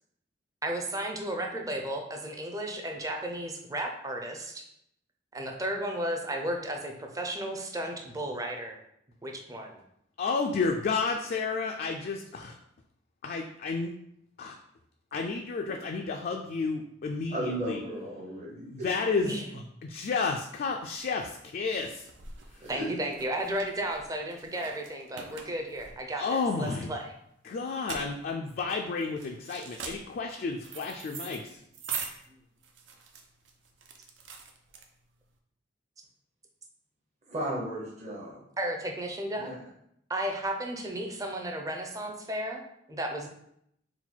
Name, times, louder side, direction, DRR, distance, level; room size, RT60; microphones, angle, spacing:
voice 1, 0.6-4.6 5.3-8.8 9.2-9.8 19.2-19.4 22.7-27.1 38.6-39.5 40.1-43.3, right 1 dB, 20° right, 3 dB, 0.5 m, -34 dB
voice 2, 10.2-12.6 13.2-13.9 14.4-14.5 15.1-17.8 18.5-19.4 19.8-22.1 26.2-26.9 27.4-31.6, left 4 dB, 50° left, 2 dB, 0.3 m, -31 dB
voice 3, 17.3-18.9 22.6-22.9 37.3-38.4 39.4-39.6, right 1 dB, 40° right, -4 dB, 0.9 m, -35 dB
sound 1, 21.1-35.3, right 6 dB, 85° right, 0.6 m, -43 dB
4.0 x 2.3 x 4.3 m, 0.74 s
head